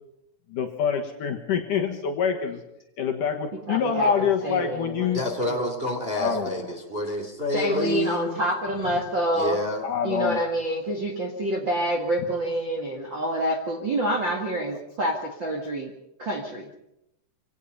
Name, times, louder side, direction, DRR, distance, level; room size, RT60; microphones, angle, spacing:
voice 1, 0.5-2.6 3.0-5.2 6.2-6.7 9.8-10.4, left 7 dB, 60° left, 3 dB, 2.8 m, -26 dB
voice 2, 3.7-5.2 5.5-5.7 7.5-9.6 10.0-15.9 16.2-16.7, right 1 dB, 40° right, 2 dB, 1.8 m, -27 dB
voice 3, 5.1-8.4 9.3-9.9, left 1 dB, 15° right, 2 dB, 2.3 m, -28 dB
25.5 x 18.0 x 5.6 m, 0.85 s
omnidirectional pair, 4.8 m